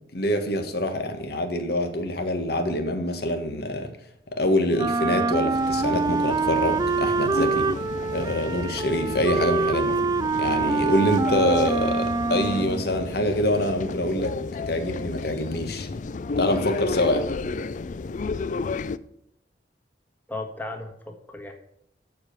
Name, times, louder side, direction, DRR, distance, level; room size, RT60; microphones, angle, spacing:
voice 1, 0.1-3.9 4.3-7.7 8.1-10.0 10.4-14.3 14.7-15.9 16.4-17.2, left 1 dB, 60° left, 1.6 m, -25 dB
Wind instrument woodwind instrument, 4.8-12.9, right 4 dB, 20° right, 0.3 m, -25 dB
sound 1, 5.5-19.0, left 3 dB, 45° left, 0.4 m, -32 dB
voice 2, 20.3-21.5, left 2 dB, 10° left, 1.5 m, -35 dB
13.0 x 4.9 x 6.7 m
head